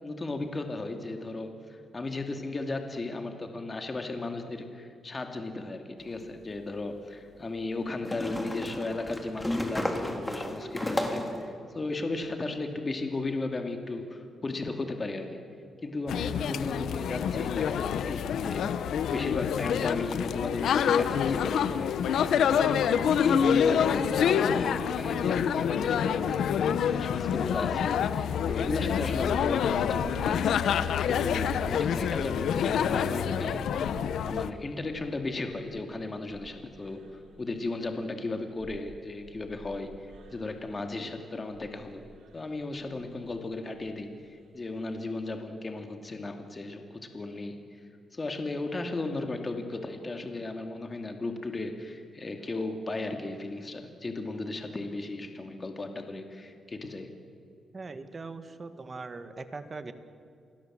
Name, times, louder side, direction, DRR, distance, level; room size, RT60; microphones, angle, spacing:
voice 1, 0.0-15.4 15.8-21.9 22.3-42.0 42.3-47.8 48.1-57.1, left 2 dB, 30° left, 5 dB, 2.5 m, -35 dB
sound 1, 6.1-6.2 8.0-11.4, left 1 dB, 10° left, 3.6 m, -32 dB
sound 2, 16.1-34.5, left 8 dB, 80° left, 0.9 m, -27 dB
sound 3, 28.5-41.1 41.4-42.5 42.8-43.3 43.7-43.9 44.2-44.4 44.7-45.0, right 3 dB, 90° right, 5.1 m, -49 dB
voice 2, 57.7-59.9, right 3 dB, 35° right, 9 dB, 1.9 m, -40 dB
27.5 x 21.0 x 7.6 m, 2.5 s
cardioid pair, 95°, 0 cm